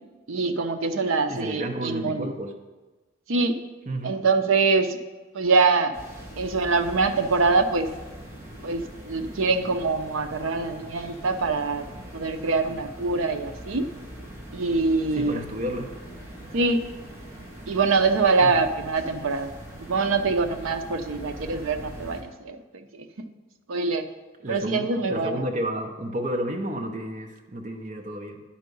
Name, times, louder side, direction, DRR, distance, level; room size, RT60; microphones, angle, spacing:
voice 1, 0.3-2.3 3.3-3.6 4.0-5.0 5.3-5.9 6.4-7.9 8.6-11.9 12.1-13.9 14.5-15.4 16.5-16.8 17.7-19.5 19.8-22.6 22.9-23.3 23.7-24.0 24.5-25.4, right 4 dB, 75° right, 8 dB, 0.6 m, -24 dB
voice 2, 1.3-2.5 3.9-4.2 15.1-16.0 18.4-18.7 24.4-28.4, right 1 dB, 35° right, 2 dB, 0.7 m, -31 dB
sound 1, 5.9-22.2, right 1 dB, 15° right, 1.4 m, -42 dB
10.5 x 4.7 x 5.3 m, 1.2 s
head